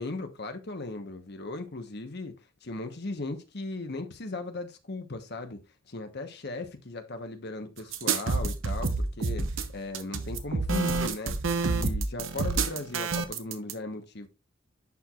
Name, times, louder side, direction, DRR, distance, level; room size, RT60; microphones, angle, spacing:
voice 1, 0.0-2.3 2.6-5.6 5.9-9.5 9.7-14.3, left 2 dB, 55° left, 1.1 m, -37 dB
sound 1, 7.9-13.7, right 3 dB, 85° right, 0.9 m, -28 dB
11.0 x 4.6 x 2.4 m
head